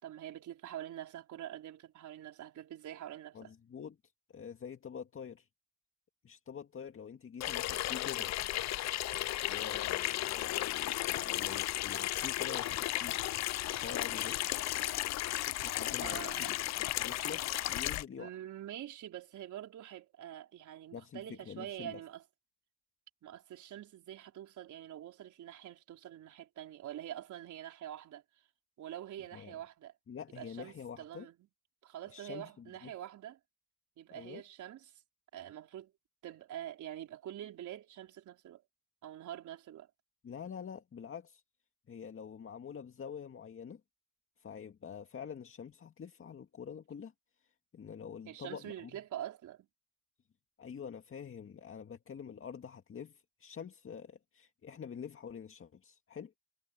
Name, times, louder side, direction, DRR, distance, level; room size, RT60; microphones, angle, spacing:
voice 1, 0.0-3.5 16.0-16.6 18.2-22.2 23.2-28.2 28.8-29.9 30.4-31.3 31.8-33.4 34.0-35.0 35.3-35.9 36.2-38.6 39.0-39.9 48.3-49.7, right 11 dB, 75° right, 4.3 m, -45 dB
voice 2, 3.3-4.0 4.3-5.5 6.2-8.3 9.4-13.2 13.7-14.5 15.6-18.3 20.9-22.0 29.3-29.6 30.1-31.3 32.1-32.9 34.1-34.4 40.2-41.4 41.9-43.8 44.4-47.1 47.7-48.9 50.6-56.3, left 7 dB, 45° left, 2.0 m, -46 dB
Water tap faucet / Sink (filling or washing), 7.4-18.0, left 15 dB, 60° left, 0.5 m, -34 dB
cardioid pair, 90°, 30 cm